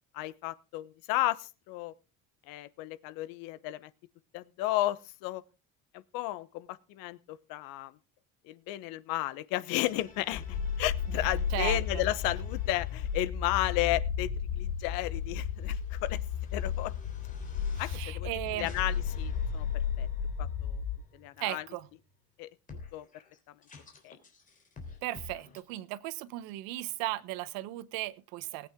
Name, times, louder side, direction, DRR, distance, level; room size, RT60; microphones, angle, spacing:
voice 1, 0.1-1.9 2.5-3.9 4.3-5.4 5.9-8.0 8.4-16.2 16.5-16.9 17.8-18.3 18.6-19.7 20.0-20.1 20.4-20.8 21.1-21.6 22.4-22.5 22.9-23.1 23.5-23.6 24.0-24.2, left 16 dB, 80° left, 1.0 m, -33 dB
sound 1, 9.8-13.3 13.8-22.0 22.7-25.6, left 4 dB, 25° left, 3.4 m, -50 dB
sound 2, 10.3-21.0, left 7 dB, 55° left, 1.5 m, -33 dB
voice 2, 11.2-12.0 17.9-18.7 21.4-21.9 25.0-28.7, right 16 dB, 90° right, 1.1 m, -36 dB
19.5 x 8.9 x 3.7 m
cardioid pair, 160°, 34 cm